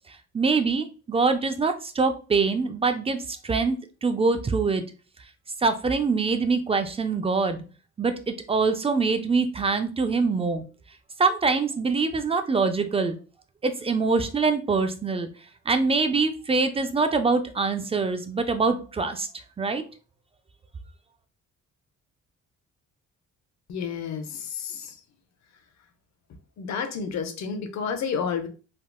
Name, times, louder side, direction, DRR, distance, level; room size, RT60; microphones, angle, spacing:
voice 1, 0.3-3.2 3.4-3.8 4.0-4.8 5.6-7.6 8.0-10.6 11.2-13.2 13.6-15.3 15.7-19.3 19.6-19.8, right 4 dB, 20° right, 8 dB, 0.4 m, -24 dB
voice 2, 23.7-25.0 26.6-28.5, left 6 dB, 65° left, 8 dB, 0.6 m, -30 dB
3.5 x 2.3 x 2.2 m, 0.35 s
cardioid pair, 90°, 30 cm